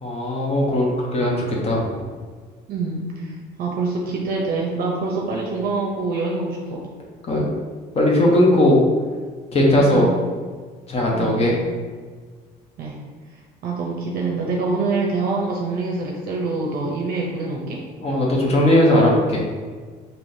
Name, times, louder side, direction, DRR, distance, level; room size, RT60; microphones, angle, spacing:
voice 1, 0.0-2.1 7.3-7.5 8.0-8.8 9.5-10.1 10.9-11.5 18.0-19.4, left 1 dB, 35° left, -2 dB, 0.7 m, -18 dB
voice 2, 2.7-6.8 9.7-10.2 11.1-11.5 12.8-13.0 13.6-17.8, right 3 dB, 60° right, -2 dB, 0.5 m, -25 dB
3.5 x 2.8 x 2.6 m, 1.5 s
cardioid pair, 110°, 17 cm